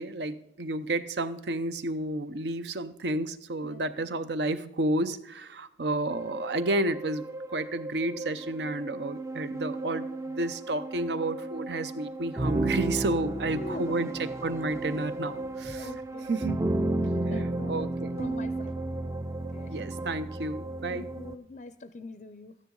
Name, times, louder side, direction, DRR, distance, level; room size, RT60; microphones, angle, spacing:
voice 1, 0.0-14.1 14.4-15.9 16.3-16.7 17.3-18.2 19.7-21.1, right 2 dB, 75° right, 12 dB, 0.7 m, -31 dB
voice 2, 3.6-4.2 13.2-14.1 15.8-16.3 17.1-18.8 19.5-19.8 20.9-22.6, left 2 dB, 40° left, 10 dB, 0.4 m, -43 dB
sound 1, 6.1-21.4, right 2 dB, 15° right, 0.4 m, -33 dB
13.0 x 10.0 x 3.8 m, 0.81 s
head